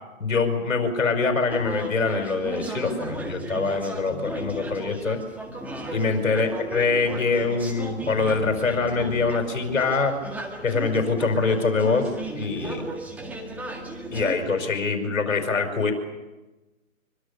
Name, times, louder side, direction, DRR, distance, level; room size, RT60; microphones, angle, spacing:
voice 1, 0.2-5.2 5.9-10.1 10.6-12.9 14.1-15.9, left 4 dB, 70° left, 6 dB, 5.7 m, -24 dB
sound 1, 1.5-14.3, right 1 dB, 5° right, 1.9 m, -35 dB
25.5 x 24.5 x 7.0 m, 1.1 s
hypercardioid pair, 150°, 41 cm